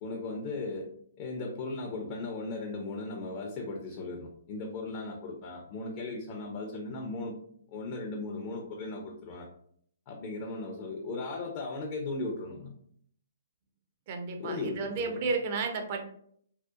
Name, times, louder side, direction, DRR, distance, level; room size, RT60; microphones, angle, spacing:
voice 1, 0.0-0.9 1.2-7.4 7.7-9.5 10.1-12.7 14.4-15.2, left 3 dB, 35° left, 0 dB, 0.4 m, -37 dB
voice 2, 14.1-16.0, right 4 dB, 45° right, 4 dB, 0.5 m, -32 dB
2.7 x 2.0 x 2.3 m, 0.63 s
hypercardioid pair, 135°, 0 cm